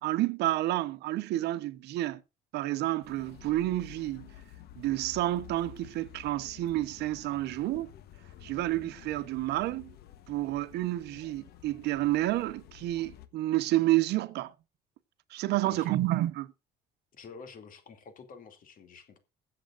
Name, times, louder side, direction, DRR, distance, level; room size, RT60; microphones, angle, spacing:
voice 1, 0.0-2.2 2.5-4.3 4.8-7.9 8.4-9.9 10.3-14.5 15.3-16.5, right 16 dB, 80° right, 0.9 m, -30 dB
sound 1, 3.0-13.3, left 11 dB, 70° left, 1.1 m, -51 dB
voice 2, 17.1-19.2, left 5 dB, 55° left, 2.6 m, -49 dB
21.5 x 7.6 x 2.5 m
cardioid pair, 110°, 17 cm